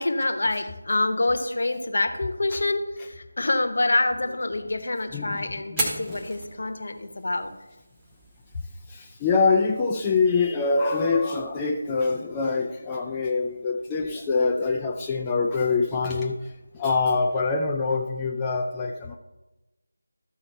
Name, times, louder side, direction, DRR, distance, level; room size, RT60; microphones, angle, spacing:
voice 1, 0.0-7.5, left 2 dB, 50° left, 6 dB, 1.0 m, -26 dB
voice 2, 5.1-5.4 5.7-6.2 8.9-16.4 16.7-19.2, left 4 dB, 10° left, 0 dB, 0.4 m, -25 dB
Fire, 5.6-13.6, right 1 dB, 10° right, 1.2 m, -39 dB
13.5 x 4.6 x 4.3 m, 1.1 s
figure-of-eight pair, 165°, 0 cm